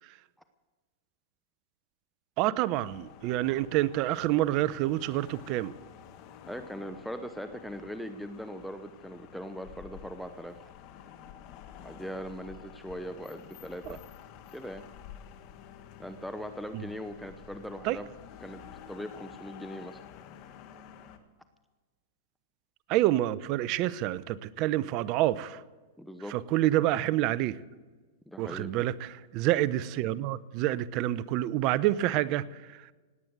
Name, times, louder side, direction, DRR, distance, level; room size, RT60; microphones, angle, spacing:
voice 1, 2.4-5.7 16.7-16.8 17.8-18.0 22.9-25.6 26.3-27.6 28.4-32.9, right 14 dB, 45° right, 17 dB, 0.7 m, -28 dB
sound 1, 2.7-21.2, left 9 dB, 45° left, 1.6 m, -50 dB
voice 2, 6.4-10.7 11.8-14.0 14.5-14.9 16.0-18.1 18.4-18.6 18.9-20.0 26.0-26.3 28.3-28.9, equal, ahead, 9 dB, 0.8 m, -40 dB
18.5 x 8.9 x 8.0 m, 1.3 s
hypercardioid pair, 125°, 0 cm